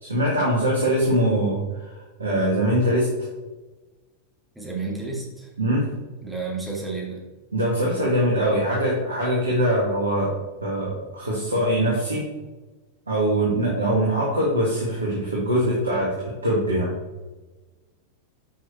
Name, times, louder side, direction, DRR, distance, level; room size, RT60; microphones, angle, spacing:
voice 1, 0.0-3.1 5.6-5.8 7.5-10.3 10.6-12.2 13.1-16.9, right 1 dB, 75° right, -4 dB, 1.8 m, -22 dB
voice 2, 4.5-5.5 6.2-7.2, right 3 dB, 5° right, -4 dB, 2.5 m, -31 dB
8.3 x 5.3 x 4.5 m, 1.2 s
figure-of-eight pair, 90°, 0 cm